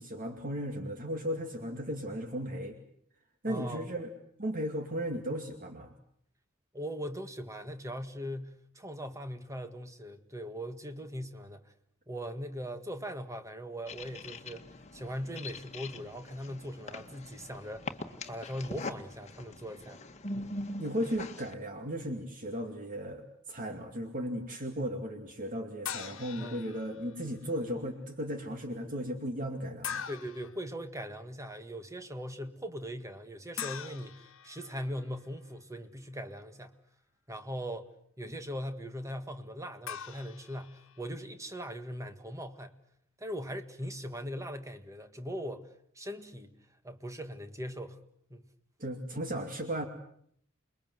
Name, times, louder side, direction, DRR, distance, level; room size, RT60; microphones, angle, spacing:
voice 1, 0.0-2.7 3.4-4.1 4.4-5.9 20.8-30.1 48.8-49.8, equal, 40° right, 2.5 m, -36 dB
voice 2, 3.5-3.9 6.7-11.7 12.1-18.0 18.3-20.0 20.3-20.5 26.4-26.6 30.1-36.8 37.3-37.9 38.2-42.8 43.2-45.7 46.0-46.5 46.8-48.0 48.3-48.5, equal, 15° right, 1.8 m, -40 dB
sound 1, 13.9-21.5, left 2 dB, 35° left, 1.8 m, -43 dB
sound 2, 25.8-27.2 29.8-30.6 33.6-35.1 39.9-41.1, left 9 dB, 70° left, 1.4 m, -42 dB
28.5 x 22.0 x 7.9 m
head